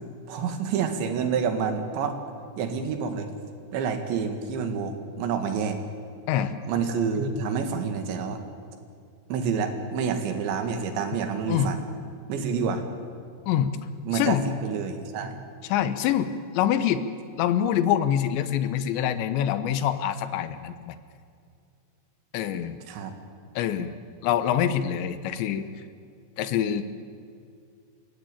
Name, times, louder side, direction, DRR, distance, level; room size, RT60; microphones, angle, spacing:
voice 1, 0.3-2.2 2.6-3.3 3.7-5.8 6.7-8.4 9.3-11.8 12.3-12.8 14.1-15.4 22.9-23.1, right 6 dB, 90° right, 6 dB, 4.3 m, -28 dB
voice 2, 14.1-14.5 15.7-16.3 16.6-17.1 17.4-21.0 22.3-22.8 23.6-23.9 24.2-25.7 26.4-26.8, left 10 dB, 85° left, 12 dB, 3.4 m, -25 dB
29.5 x 16.5 x 9.0 m, 2.3 s
omnidirectional pair, 5.0 m